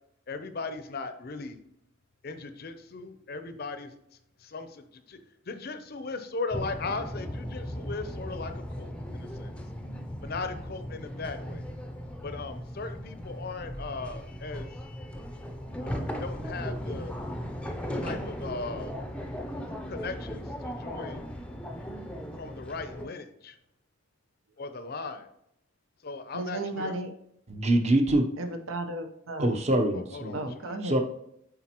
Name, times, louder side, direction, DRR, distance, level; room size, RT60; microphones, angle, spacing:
voice 1, 0.3-1.6 2.2-4.0 4.4-5.2 5.5-9.5 10.2-11.7 12.2-14.7 15.8-17.2 18.0-19.0 19.9-21.3 22.4-23.6 24.6-25.3 26.0-26.9 29.9-30.8, left 3 dB, 50° left, 9 dB, 0.6 m, -38 dB
sound 1, 6.5-23.0, equal, 5° left, 0.5 m, -37 dB
voice 2, 26.3-27.1 28.4-29.5 30.3-31.0, right 2 dB, 85° right, 7 dB, 0.8 m, -34 dB
voice 3, 27.5-28.3 29.4-30.5 30.8-31.0, right 1 dB, 35° right, 5 dB, 0.7 m, -24 dB
8.6 x 4.0 x 2.9 m, 0.75 s
head